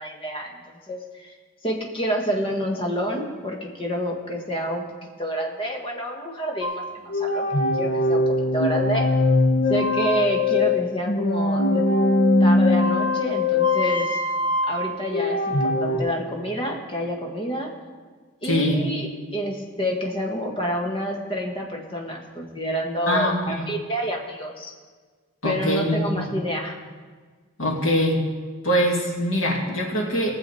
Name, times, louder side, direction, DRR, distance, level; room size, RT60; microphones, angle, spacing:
voice 1, 0.0-1.4 1.6-4.8 5.2-7.5 7.7-9.1 9.7-11.9 12.4-14.2 14.7-17.7 18.4-24.7 25.4-26.8, equal, 25° left, 0 dB, 1.5 m, -28 dB
sound 1, 6.6-16.0, left 2 dB, 65° left, 1.1 m, -21 dB
voice 2, 18.4-18.9 23.1-23.5 25.4-26.3 27.6-28.2 28.6-30.3, equal, 90° left, -2 dB, 2.5 m, -23 dB
19.0 x 7.1 x 4.2 m, 1.5 s
head